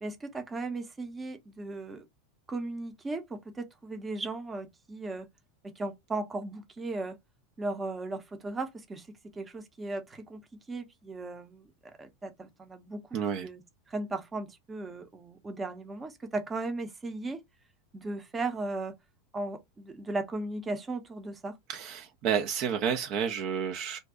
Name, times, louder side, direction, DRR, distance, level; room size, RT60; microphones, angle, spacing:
voice 1, 0.0-2.0 2.5-5.3 5.6-7.2 7.6-9.1 9.3-10.4 10.7-11.7 12.0-13.6 13.9-17.4 17.9-19.0 19.3-21.6, right 2 dB, 20° right, 0.7 m, -36 dB
voice 2, 13.1-13.5 21.7-24.0, right 7 dB, 45° right, 0.5 m, -30 dB
2.6 x 2.2 x 3.6 m
figure-of-eight pair, 85°, 0 cm